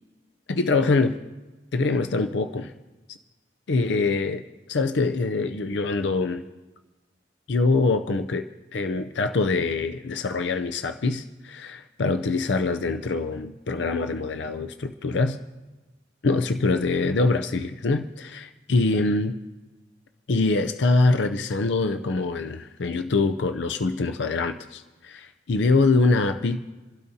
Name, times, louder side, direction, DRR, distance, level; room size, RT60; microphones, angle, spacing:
voice 1, 0.5-1.2 1.7-2.7 3.7-6.4 7.5-15.4 16.2-19.4 20.3-26.6, left 3 dB, 80° left, 8 dB, 0.5 m, -24 dB
27.5 x 12.5 x 2.8 m, 1.2 s
head